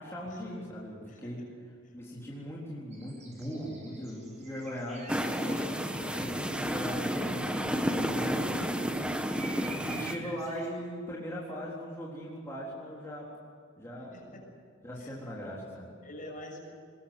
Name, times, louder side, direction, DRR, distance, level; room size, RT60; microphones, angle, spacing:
voice 1, 0.0-1.4 1.9-8.9 9.8-13.3 13.8-14.4 14.8-15.9, equal, 15° left, -6 dB, 3.9 m, -39 dB
sound 1, 2.9-7.1 7.4-8.0 9.3-10.7, right 3 dB, 35° right, 7.2 m, -48 dB
sound 2, 5.1-10.2, equal, 5° right, 1.4 m, -31 dB
voice 2, 9.7-10.1 14.1-14.4 15.0-15.1 16.0-16.6, left 1 dB, 40° left, 1 dB, 6.8 m, -47 dB
21.5 x 21.0 x 8.3 m, 2.2 s
head